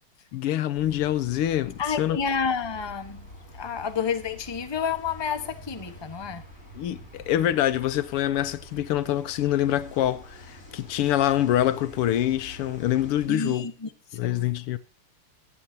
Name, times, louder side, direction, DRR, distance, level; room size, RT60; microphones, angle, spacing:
voice 1, 0.3-2.2 6.8-13.7 14.1-14.8, left 12 dB, 85° left, 1.8 m, -25 dB
sound 1, 0.7-13.3, left 1 dB, 35° left, 5.3 m, -46 dB
voice 2, 1.8-3.3 3.5-6.4 13.3-14.5, left 6 dB, 15° left, 0.9 m, -30 dB
25.5 x 8.6 x 2.8 m
omnidirectional pair, 2.4 m